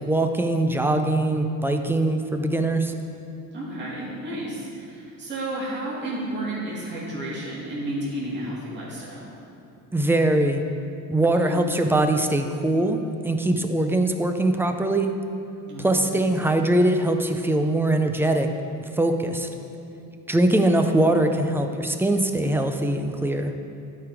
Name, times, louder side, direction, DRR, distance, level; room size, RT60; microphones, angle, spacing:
voice 1, 0.0-2.9 9.9-10.6 11.1-15.1 15.8-18.5 19.0-19.5 20.3-23.5, right 1 dB, 5° right, 5 dB, 0.4 m, -22 dB
voice 2, 3.5-9.3 11.3-11.6 15.7-16.3 20.0-20.1, right 1 dB, 30° right, -7 dB, 2.2 m, -32 dB
12.0 x 4.9 x 4.9 m, 2.8 s
cardioid pair, 135°, 37 cm